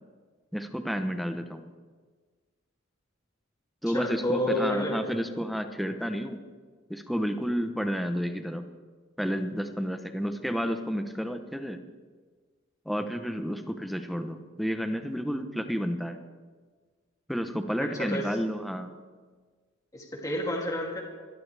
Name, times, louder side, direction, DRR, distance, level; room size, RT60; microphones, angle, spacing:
voice 1, 0.5-1.7 3.8-6.4 6.9-8.6 9.2-11.8 12.9-16.2 17.3-18.9, equal, ahead, 7 dB, 0.9 m, -31 dB
voice 2, 3.9-5.0 17.8-18.3 19.9-21.0, left 1 dB, 20° left, -3 dB, 2.8 m, -30 dB
27.5 x 12.5 x 3.4 m, 1.5 s
head